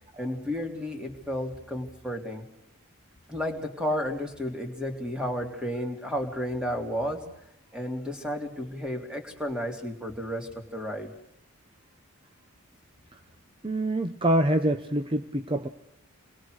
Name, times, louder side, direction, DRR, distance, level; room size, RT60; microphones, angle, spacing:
voice 1, 0.2-2.5 3.3-7.2 7.7-11.1, equal, 5° right, 3 dB, 3.1 m, -32 dB
voice 2, 13.6-15.7, right 1 dB, 25° right, 8 dB, 0.9 m, -25 dB
28.0 x 21.5 x 6.5 m, 0.79 s
head